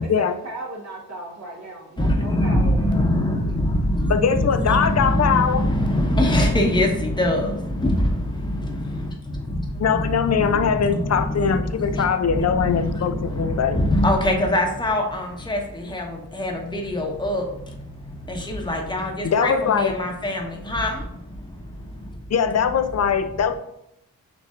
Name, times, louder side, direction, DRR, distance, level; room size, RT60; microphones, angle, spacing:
voice 1, 0.0-3.1, right 1 dB, 45° right, -1 dB, 1.2 m, -36 dB
voice 2, 2.0-22.2, left 1 dB, 10° left, 1 dB, 1.0 m, -24 dB
voice 3, 4.1-5.6 9.8-13.8 19.2-19.9 22.3-23.5, left 7 dB, 45° left, 9 dB, 0.5 m, -21 dB
6.5 x 2.6 x 2.5 m, 0.76 s
cardioid pair, 45°, 37 cm